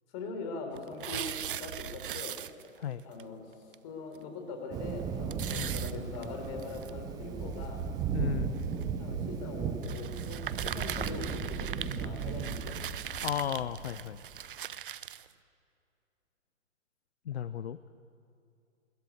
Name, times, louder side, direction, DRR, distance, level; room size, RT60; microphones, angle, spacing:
voice 1, 0.1-2.4 3.0-3.5 3.8-7.8 9.0-12.8, left 3 dB, 30° left, 4 dB, 4.1 m, -42 dB
sound 1, 0.7-2.9 3.2-3.3 3.7-3.8 4.2-4.3 5.3-6.9 7.6-7.7 8.6-8.9 9.8-15.3, right 10 dB, 45° right, 0.7 m, -40 dB
Thunder, 4.7-14.4, right 6 dB, 10° right, 0.8 m, -36 dB
voice 2, 8.1-8.7 13.2-14.2 17.3-17.8, left 9 dB, 55° left, 14 dB, 0.7 m, -34 dB
21.5 x 19.5 x 9.5 m, 2.6 s
figure-of-eight pair, 130°, 39 cm